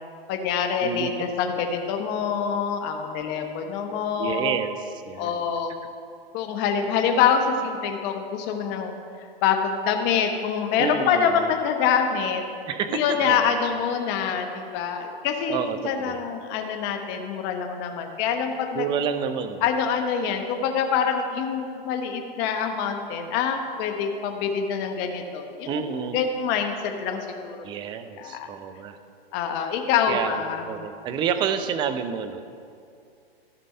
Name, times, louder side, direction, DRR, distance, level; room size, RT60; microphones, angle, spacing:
voice 1, 0.3-4.5 5.2-5.7 6.3-8.9 9.4-12.4 12.9-18.9 19.6-25.8 26.1-27.6 28.2-28.5 29.3-30.7, left 7 dB, 35° left, 4 dB, 1.1 m, -25 dB
voice 2, 0.8-1.1 4.2-5.4 10.8-11.5 12.7-13.6 15.5-16.3 18.7-19.7 25.7-26.3 27.6-29.0 30.1-30.4 30.7-32.4, right 7 dB, 15° right, 9 dB, 0.4 m, -29 dB
13.5 x 5.3 x 5.4 m, 2.4 s
hypercardioid pair, 130°, 30 cm